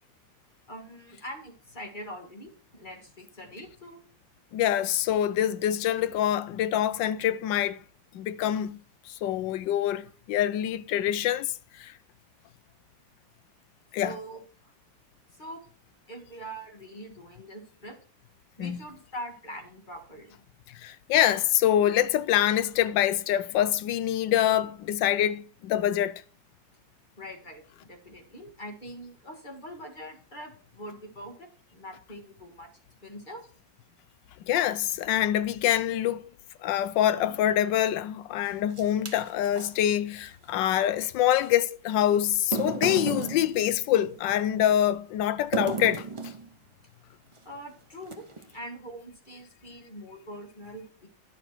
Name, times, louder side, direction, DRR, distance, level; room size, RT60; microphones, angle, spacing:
voice 1, 0.7-4.1 14.0-14.7 15.3-15.6 16.1-18.0 18.6-20.4 27.2-32.7 33.0-33.4 47.4-51.1, equal, 25° left, 1.8 m, -43 dB
voice 2, 4.5-7.8 8.1-8.8 9.1-11.9 13.9-14.2 18.6-18.8 20.8-26.1 34.5-36.2 36.6-46.1, left 11 dB, 75° left, 1.3 m, -25 dB
sound 1, 38.5-39.7 41.4-41.5 42.3-44.5 45.5-46.5 47.3-47.5 48.0-48.6, right 4 dB, 30° right, 0.5 m, -34 dB
11.0 x 6.7 x 4.4 m
omnidirectional pair, 2.1 m